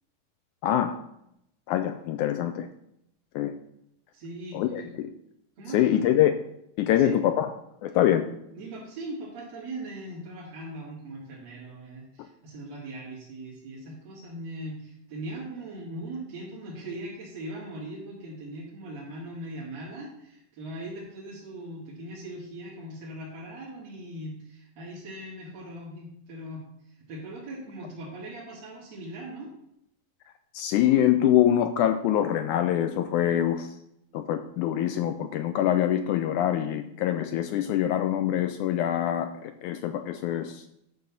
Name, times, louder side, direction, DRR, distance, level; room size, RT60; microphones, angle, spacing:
voice 1, 0.6-1.0 1.7-2.7 3.4-3.5 4.5-5.1 5.7-6.4 6.8-7.5 7.8-8.3 30.5-33.8 34.1-40.6, left 11 dB, 85° left, 8 dB, 1.8 m, -24 dB
voice 2, 4.1-4.9 5.6-6.0 7.0-7.1 8.5-29.5, right 1 dB, 50° right, -6 dB, 3.2 m, -40 dB
11.5 x 3.9 x 7.1 m, 0.78 s
omnidirectional pair, 4.1 m